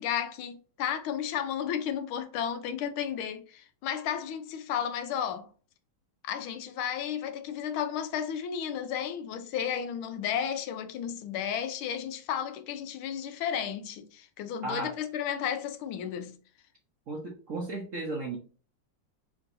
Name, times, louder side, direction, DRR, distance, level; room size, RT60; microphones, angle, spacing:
voice 1, 0.0-5.5 6.2-16.4, left 8 dB, 85° left, 1.6 m, -33 dB
voice 2, 17.1-18.4, right 2 dB, 50° right, 1.0 m, -34 dB
4.7 x 3.7 x 2.6 m
omnidirectional pair, 2.2 m